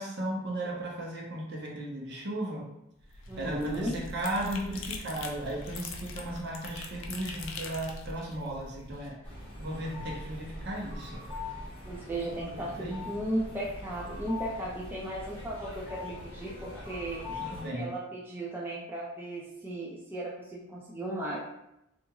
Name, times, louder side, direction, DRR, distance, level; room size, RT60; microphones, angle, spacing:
voice 1, 0.0-2.7 3.4-9.1 9.6-11.2 12.5-13.1 17.4-17.9, right 1 dB, 55° right, -2 dB, 0.7 m, -36 dB
sound 1, 3.0-9.1, left 3 dB, 70° left, 0.4 m, -42 dB
voice 2, 3.3-4.0 11.8-17.4 17.7-21.4, right 1 dB, 10° right, -6 dB, 0.3 m, -36 dB
sound 2, 9.2-17.7, left 2 dB, 10° left, 0.9 m, -42 dB
2.9 x 2.4 x 2.3 m, 0.84 s
head